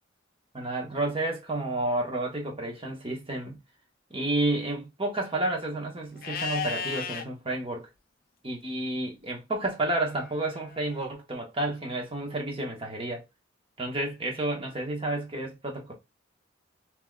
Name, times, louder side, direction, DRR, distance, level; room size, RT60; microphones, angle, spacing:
voice 1, 0.5-3.6 4.1-7.9 8.4-13.2 13.8-15.9, right 2 dB, 30° right, 1.2 m, -31 dB
Livestock farm animals working animals, 6.2-7.2 10.1-11.1, left 6 dB, 50° left, 0.6 m, -35 dB
5.8 x 3.0 x 2.3 m
head